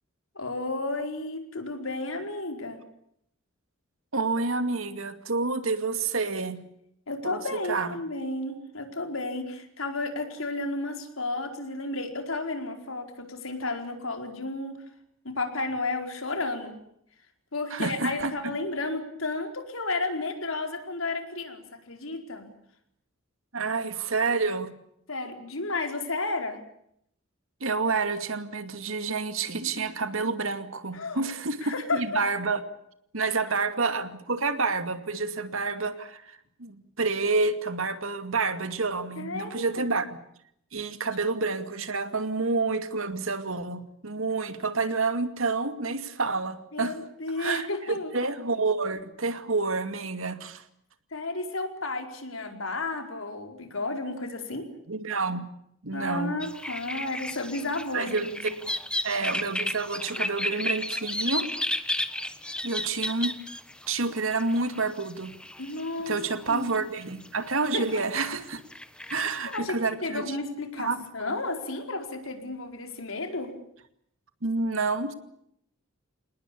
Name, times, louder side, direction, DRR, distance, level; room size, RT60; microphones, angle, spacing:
voice 1, 0.3-2.8 7.1-14.8 15.2-16.8 17.5-22.5 25.1-26.6 30.9-31.3 31.6-32.0 39.2-39.9 46.7-48.1 51.1-54.7 55.9-58.5 60.2-60.3 65.6-66.2 66.5-66.7 67.7-68.0 69.5-73.5, left 2 dB, 80° left, 5 dB, 4.6 m, -32 dB
voice 2, 4.1-6.6 7.2-7.4 7.7-7.9 17.7-18.3 23.5-24.7 27.6-32.6 33.1-40.1 40.7-46.9 47.4-50.6 54.9-55.5 55.8-56.3 57.9-58.3 59.0-61.5 62.6-63.3 63.9-65.3 66.1-68.6 69.1-70.4 70.8-71.3 74.4-75.1, right 3 dB, 80° right, 9 dB, 2.4 m, -29 dB
sound 1, 56.4-66.8 67.0-68.3 68.6-69.6, left 1 dB, 5° left, 1.3 m, -33 dB
27.5 x 19.5 x 8.6 m, 0.74 s
head